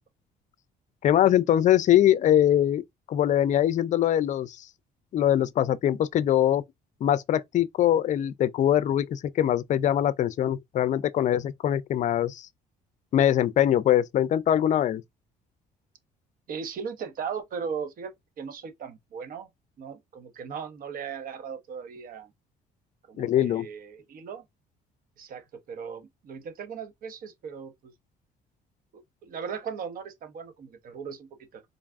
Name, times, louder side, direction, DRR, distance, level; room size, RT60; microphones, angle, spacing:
voice 1, 1.0-2.8 3.1-4.6 5.1-6.6 7.0-12.5 13.1-15.0 23.2-23.7, left 11 dB, 45° left, 0.4 m, -22 dB
voice 2, 16.5-19.5 19.8-22.3 23.1-24.4 25.2-27.9 29.2-31.6, right 6 dB, 55° right, 1.0 m, -38 dB
4.0 x 2.3 x 3.5 m
cardioid pair, 110°, 17 cm